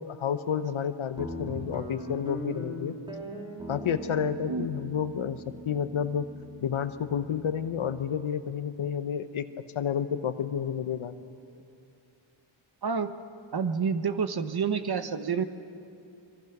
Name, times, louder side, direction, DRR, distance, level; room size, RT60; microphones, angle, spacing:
voice 1, 0.0-2.9 3.7-6.3 6.6-9.5 9.7-11.1, left 8 dB, 90° left, 10 dB, 0.9 m, -30 dB
Guitar, 1.2-7.9, right 1 dB, 10° right, 3.9 m, -40 dB
voice 2, 12.8-13.1 13.5-15.4, right 6 dB, 50° right, 9 dB, 1.1 m, -28 dB
25.5 x 24.0 x 6.0 m, 2.6 s
wide cardioid pair, 105°, 48 cm